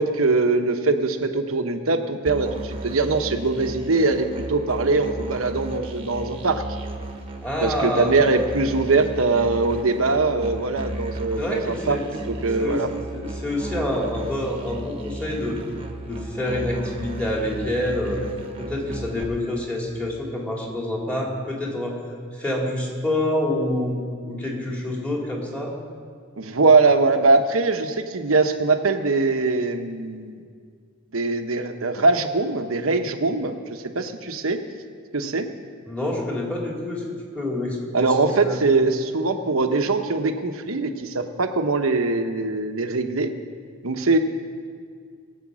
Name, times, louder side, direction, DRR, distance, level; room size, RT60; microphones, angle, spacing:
voice 1, 0.0-6.6 7.6-12.0 12.4-12.9 26.4-30.4 31.1-34.6 35.1-35.5 37.9-43.3 43.8-44.2, right 3 dB, 80° right, 6 dB, 1.0 m, -22 dB
Musical instrument, 2.3-19.2, right 2 dB, 30° right, 1.3 m, -35 dB
voice 2, 7.4-8.1 11.4-12.1 12.6-12.8 13.1-15.6 16.1-18.2 18.6-21.9 22.3-24.0 24.3-25.7 35.8-37.0 37.3-38.1 38.4-38.6, left 1 dB, 5° left, -2 dB, 2.6 m, -27 dB
20.5 x 8.1 x 6.2 m, 2.1 s
head